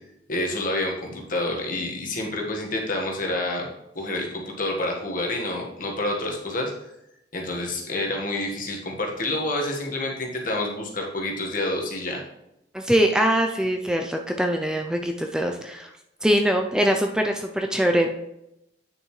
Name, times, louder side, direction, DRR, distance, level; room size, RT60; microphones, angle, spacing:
voice 1, 0.3-3.7 3.9-6.7 7.3-12.2, left 1 dB, 50° left, 0 dB, 1.5 m, -28 dB
voice 2, 12.7-15.9 16.2-18.1, equal, 5° right, 3 dB, 0.4 m, -23 dB
8.8 x 6.3 x 3.2 m, 0.84 s
head